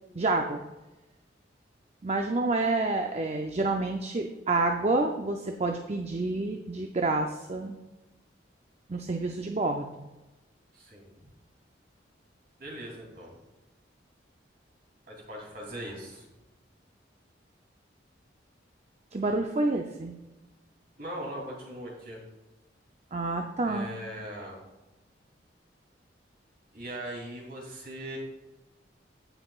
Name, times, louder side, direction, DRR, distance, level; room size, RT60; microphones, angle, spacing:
voice 1, 0.1-0.6 2.0-7.8 8.9-10.1 19.1-20.1 23.1-23.9, right 2 dB, 35° right, 3 dB, 0.5 m, -28 dB
voice 2, 10.7-11.1 12.6-13.3 15.1-16.3 21.0-22.2 23.6-24.6 26.7-28.2, right 1 dB, 55° right, -2 dB, 3.0 m, -40 dB
16.0 x 5.7 x 2.4 m, 1.1 s
head